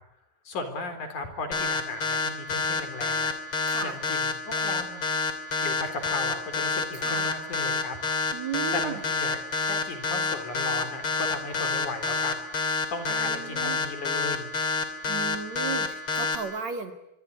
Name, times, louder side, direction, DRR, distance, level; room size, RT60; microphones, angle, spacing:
voice 1, 0.4-5.0 5.6-8.0 8.7-14.5, left 3 dB, 55° left, 9 dB, 5.1 m, -36 dB
sound 1, 1.5-16.4, left 4 dB, 40° left, 3.6 m, -27 dB
voice 2, 8.3-9.0 13.2-13.8 15.1-16.9, right 6 dB, 55° right, 8 dB, 3.2 m, -35 dB
26.0 x 23.5 x 9.7 m, 0.80 s
omnidirectional pair, 4.1 m